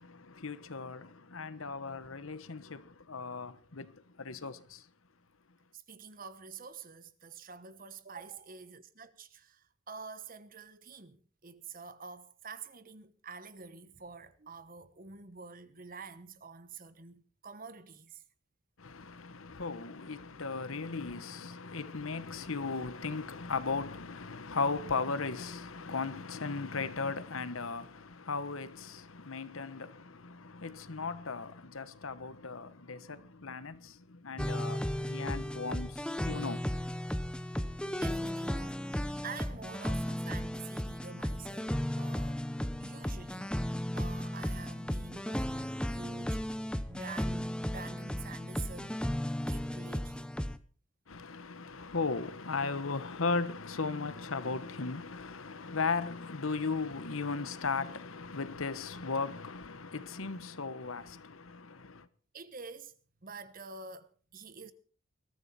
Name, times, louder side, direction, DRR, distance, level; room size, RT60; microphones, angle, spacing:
voice 1, 0.0-4.8 18.8-36.6 51.1-62.1, left 4 dB, 80° left, 1.2 m, -37 dB
voice 2, 5.7-18.2 38.0-42.4 42.8-46.4 46.9-49.0 49.5-50.3 62.3-62.9 63.2-64.7, right 5 dB, 45° right, 1.2 m, -48 dB
sound 1, 34.4-50.6, equal, 5° left, 0.7 m, -35 dB
21.5 x 13.5 x 4.2 m
head